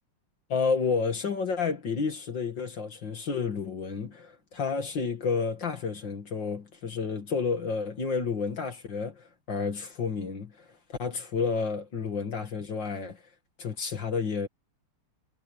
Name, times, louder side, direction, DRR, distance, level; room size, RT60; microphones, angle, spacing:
voice 1, 0.5-10.5 11.0-13.2 13.6-14.5, left 5 dB, 55° left, 2.6 m, -30 dB
omnidirectional pair, 2.4 m